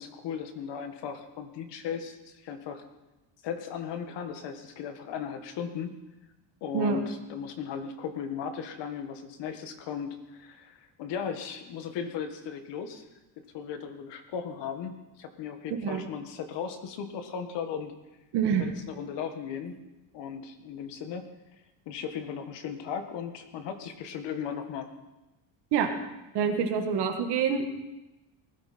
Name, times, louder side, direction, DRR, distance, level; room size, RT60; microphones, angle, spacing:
voice 1, 0.0-2.8 3.4-5.9 6.6-13.0 13.5-17.9 18.6-19.8 20.1-21.3 21.8-24.9, left 7 dB, 55° left, 7 dB, 1.7 m, -36 dB
voice 2, 18.3-18.7 25.7-25.9 26.3-27.7, right 7 dB, 55° right, 5 dB, 1.9 m, -26 dB
19.5 x 13.0 x 4.4 m, 1.0 s
cardioid pair, 165°, 49 cm